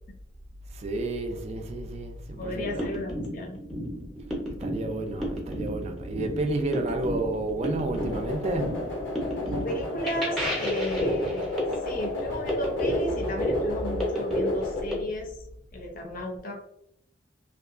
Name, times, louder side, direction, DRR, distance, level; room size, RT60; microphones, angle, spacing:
voice 1, 0.8-2.9 4.6-8.9, right 2 dB, 35° right, 0.3 m, -31 dB
voice 2, 2.4-3.6 9.4-11.5 11.8-15.4 15.7-16.5, left 1 dB, 50° left, 0.6 m, -34 dB
sound 1, 2.5-14.9, equal, ahead, 0.6 m, -32 dB
sound 2, 8.0-14.8, left 2 dB, 85° left, 0.7 m, -33 dB
2.7 x 2.2 x 2.4 m
head